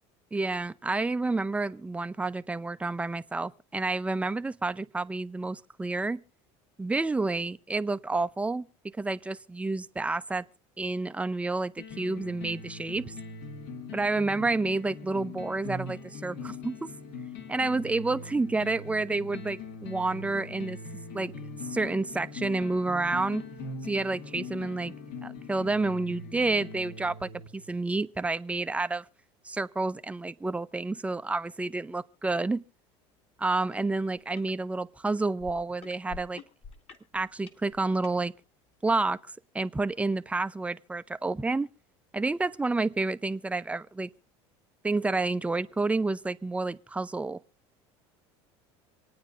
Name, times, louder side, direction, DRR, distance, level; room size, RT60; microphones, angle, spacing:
voice 1, 0.3-6.2 6.8-10.4 10.8-13.1 13.9-16.9 17.5-20.8 21.1-21.3 21.6-23.4 23.8-24.9 25.2-29.1 29.4-32.6 33.4-36.4 37.1-38.3 38.8-39.2 39.5-41.7 42.1-44.1 44.8-47.4, right 3 dB, 10° right, 0.5 m, -29 dB
sound 1, 11.8-27.7, left 4 dB, 70° left, 1.9 m, -41 dB
sound 2, 33.7-33.8 34.2-34.5 35.1-38.2 38.9-39.0, left 5 dB, 45° left, 2.2 m, -48 dB
27.5 x 9.5 x 2.5 m
supercardioid pair, 110°, 15 cm